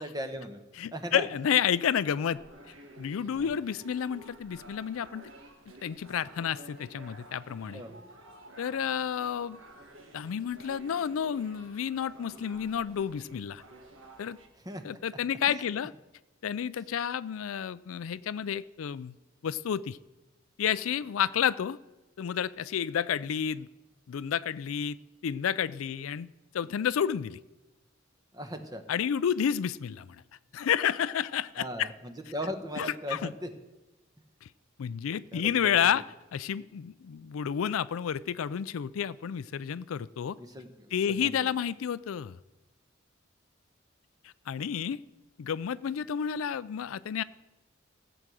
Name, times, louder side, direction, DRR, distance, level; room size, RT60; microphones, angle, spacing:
voice 1, 0.0-0.6 0.9-1.3 3.4-3.5 7.7-7.9 14.6-15.0 15.5-15.6 28.3-28.8 31.6-33.5 35.3-35.8 40.4-41.5, equal, 20° right, 6 dB, 1.1 m, -38 dB
voice 2, 0.8-2.4 3.0-5.2 5.8-7.8 8.6-9.6 10.1-13.6 14.2-14.4 14.8-15.9 16.4-19.1 19.4-20.0 20.6-21.8 22.2-23.7 24.1-25.0 25.2-26.3 26.5-27.4 28.9-30.2 30.5-31.9 32.8-33.3 34.4-34.5 34.8-36.0 36.3-40.4 40.9-42.4 44.5-45.0 45.4-47.2, left 8 dB, 85° left, 17 dB, 0.4 m, -30 dB
sound 1, 2.3-14.5, right 1 dB, 70° right, 1.5 m, -51 dB
15.5 x 7.9 x 6.2 m, 1.1 s
head